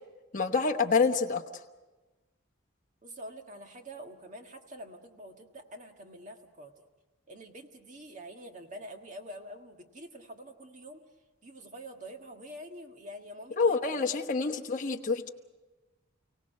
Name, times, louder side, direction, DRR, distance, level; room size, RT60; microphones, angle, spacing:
voice 1, 0.3-1.4 13.6-15.3, left 4 dB, 40° left, 3 dB, 1.1 m, -27 dB
voice 2, 3.0-6.8 7.3-11.0 11.4-14.2 14.5-14.9, equal, 35° right, 4 dB, 1.7 m, -46 dB
29.5 x 17.5 x 6.6 m, 1.2 s
head